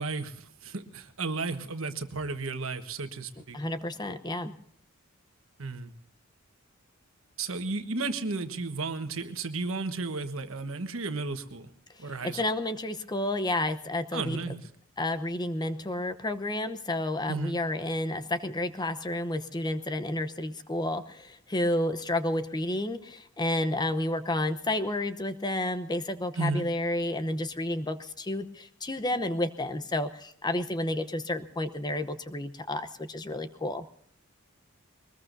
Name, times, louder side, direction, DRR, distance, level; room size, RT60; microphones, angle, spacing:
voice 1, 0.0-3.6 5.6-5.9 7.4-11.7 12.0-12.4 14.1-14.6 17.3-17.6 26.4-26.6, right 3 dB, 70° right, 8 dB, 1.4 m, -33 dB
voice 2, 3.5-4.5 12.0-14.4 15.0-33.8, left 1 dB, 20° left, 10 dB, 0.9 m, -31 dB
22.5 x 20.5 x 2.7 m, 0.64 s
head